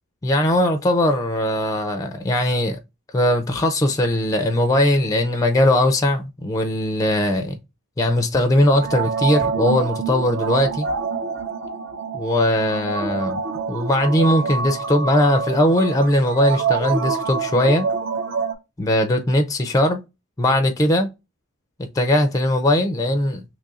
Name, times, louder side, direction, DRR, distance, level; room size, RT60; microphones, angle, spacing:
voice 1, 0.2-2.8 3.1-7.6 8.0-10.9 12.1-13.4 13.7-17.9 18.8-20.0 20.4-21.1 22.0-23.4, left 1 dB, 15° left, 0.4 m, -19 dB
sound 1, 8.7-18.5, right 5 dB, 55° right, 0.5 m, -26 dB
3.0 x 2.4 x 3.9 m
head